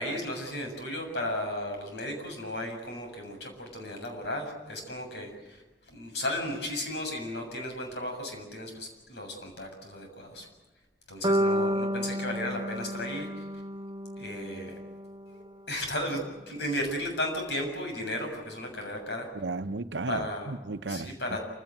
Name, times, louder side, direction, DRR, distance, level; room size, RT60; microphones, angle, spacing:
voice 1, 0.0-5.6 5.9-10.5 11.1-13.3 14.2-14.7 15.2-19.3 20.1-20.5 20.9-21.4, left 1 dB, 70° left, 7.1 m, -35 dB
sound 1, 11.2-15.3, equal, 25° right, 1.2 m, -31 dB
voice 2, 19.3-21.4, right 3 dB, 90° right, 0.9 m, -35 dB
27.5 x 17.0 x 9.1 m
head